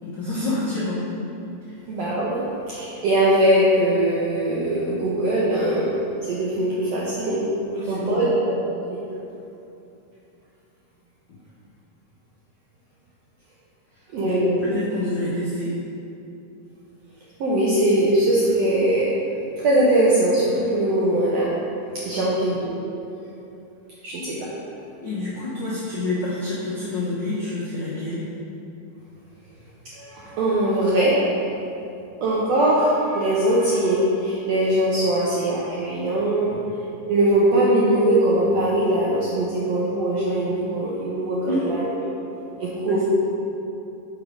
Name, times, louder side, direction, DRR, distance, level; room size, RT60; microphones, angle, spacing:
voice 1, 0.0-1.1 1.7-1.8 7.6-8.3 14.2-15.7 22.1-22.3 25.0-28.2 41.5-41.7 42.9-43.0, left 2 dB, 80° left, -9 dB, 1.0 m, -28 dB
voice 2, 1.9-5.9 6.2-7.4 7.9-8.5 8.9-9.0 14.1-14.7 17.4-19.2 19.6-21.5 22.1-23.0 24.0-24.5 30.0-31.2 32.2-36.6 37.0-41.9 42.6-43.0, right 1 dB, 80° right, -6 dB, 1.5 m, -21 dB
5.5 x 4.9 x 5.1 m, 2.8 s
omnidirectional pair, 3.8 m